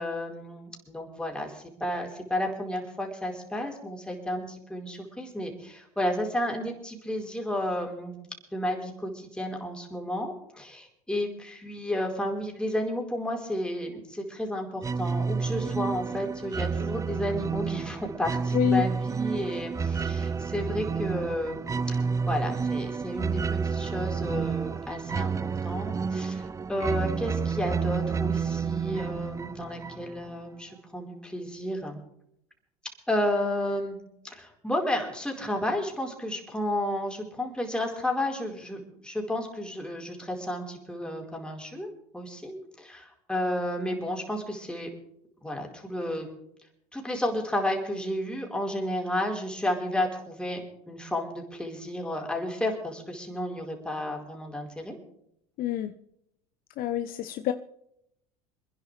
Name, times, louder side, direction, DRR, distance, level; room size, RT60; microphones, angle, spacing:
voice 1, 0.0-8.2 8.5-25.3 25.6-32.0 33.1-34.0 34.2-44.9 45.4-46.3 46.9-55.0, left 1 dB, 5° left, 0 dB, 4.7 m, -32 dB
sound 1, 14.8-30.3, right 5 dB, 15° right, 0.5 m, -30 dB
voice 2, 55.6-55.9 56.8-57.5, left 8 dB, 50° left, 9 dB, 1.0 m, -26 dB
28.0 x 10.5 x 3.4 m, 0.75 s
hypercardioid pair, 80°, 19 cm